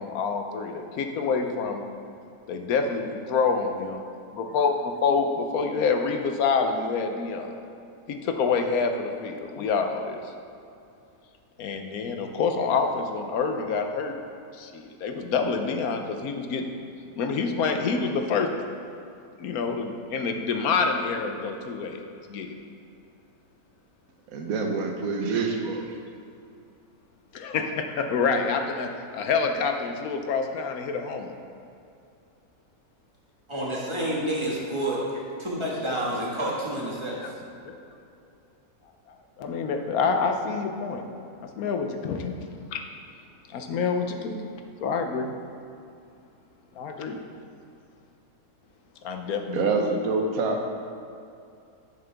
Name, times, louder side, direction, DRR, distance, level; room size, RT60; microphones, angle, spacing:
voice 1, 0.0-1.9 2.5-4.0 4.4-4.7 5.0-7.5 8.1-10.2 11.6-14.2 14.5-16.7 17.2-18.5 19.4-22.0 22.3-22.6 27.3-31.3 37.6-37.8 39.4-41.0 41.4-42.3 43.5-44.5 44.8-45.3 46.8-47.2 49.0-49.7, left 5 dB, 80° left, 5 dB, 1.2 m, -27 dB
voice 2, 24.3-25.8 49.5-50.6, right 4 dB, 75° right, 3 dB, 1.3 m, -26 dB
voice 3, 33.5-37.2, right 1 dB, 20° right, -5 dB, 1.7 m, -29 dB
10.5 x 6.8 x 3.5 m, 2.5 s
omnidirectional pair, 1.5 m